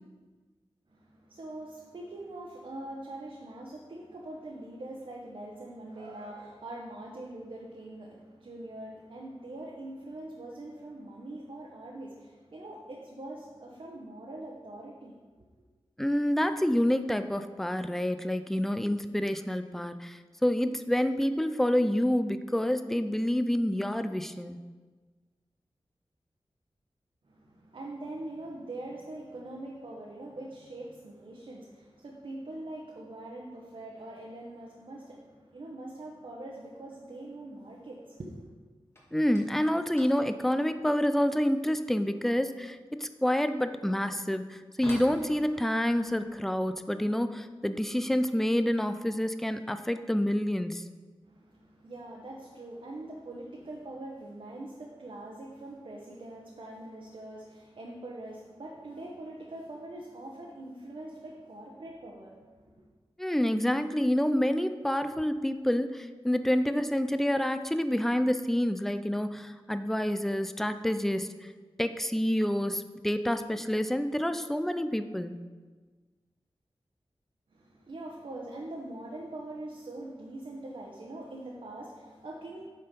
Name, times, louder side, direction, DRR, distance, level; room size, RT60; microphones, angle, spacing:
voice 1, 0.9-15.2 27.3-38.5 51.2-62.9 77.5-82.7, right 1 dB, 65° right, -3 dB, 1.1 m, -43 dB
voice 2, 16.0-24.6 39.1-50.8 63.2-71.3 71.8-75.3, equal, 5° left, 10 dB, 0.4 m, -28 dB
sound 1, 38.8-49.6 49.9-50.5 50.7-51.0 51.4-51.5 52.2-52.3 53.2-53.4 53.7-54.2, equal, 25° left, 1.9 m, -52 dB
8.6 x 4.5 x 5.4 m, 1.4 s
wide cardioid pair, 100°, 10 cm